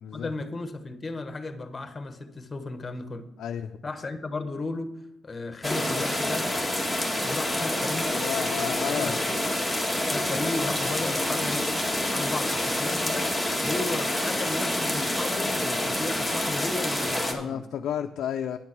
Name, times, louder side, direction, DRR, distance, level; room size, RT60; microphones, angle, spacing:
voice 1, 0.1-3.3 3.8-6.5 7.2-8.1 8.6-9.4 10.1-11.8 12.1-13.3 13.6-17.7, left 3 dB, 25° left, 1.1 m, -35 dB
voice 2, 3.4-3.7 8.1-9.1 17.3-18.6, left 9 dB, 75° left, 0.4 m, -32 dB
sound 1, 5.6-17.3, left 1 dB, 5° right, 1.7 m, -27 dB
10.0 x 6.0 x 6.0 m
cardioid pair, 90°, 0 cm